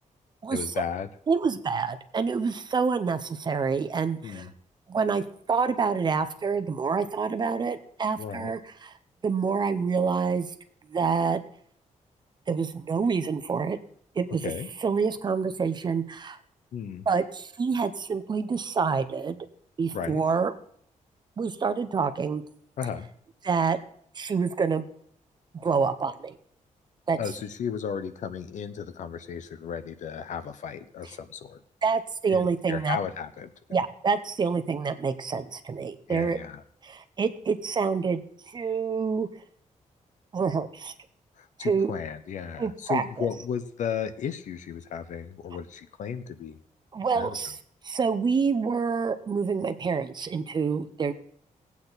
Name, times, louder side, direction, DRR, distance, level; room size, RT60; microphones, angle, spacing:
voice 1, 0.5-1.1 4.2-4.5 8.2-8.5 14.4-14.7 16.7-17.1 19.9-20.2 22.8-23.1 27.2-31.6 32.3-33.5 36.1-36.6 41.4-46.6 47.1-47.4, left 7 dB, 70° left, 12 dB, 0.8 m, -34 dB
voice 2, 1.3-4.5 4.9-5.2 5.5-8.9 9.2-10.5 10.9-11.4 12.5-13.8 14.2-14.5 14.8-16.4 17.1-19.4 19.8-20.5 21.4-22.4 23.4-23.8 24.1-24.9 25.6-26.4 27.1-27.2 31.8-33.0 33.7-36.4 36.8-39.3 40.3-40.9 41.6-41.9 42.6-43.3 46.9-47.6 47.8-51.1, right 5 dB, 35° right, 9 dB, 0.8 m, -27 dB
18.0 x 8.5 x 4.1 m, 0.63 s
wide cardioid pair, 165°, 13 cm